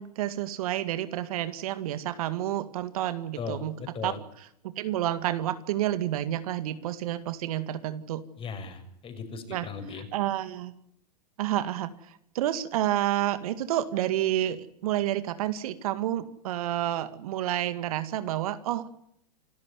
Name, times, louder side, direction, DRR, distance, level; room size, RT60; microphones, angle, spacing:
voice 1, 0.0-8.2 9.5-10.7 11.4-18.9, right 12 dB, 60° right, 12 dB, 2.1 m, -30 dB
voice 2, 3.4-4.2 8.4-10.0, left 5 dB, 25° left, 8 dB, 6.3 m, -37 dB
28.0 x 14.0 x 9.7 m, 0.72 s
hypercardioid pair, 105°, 20 cm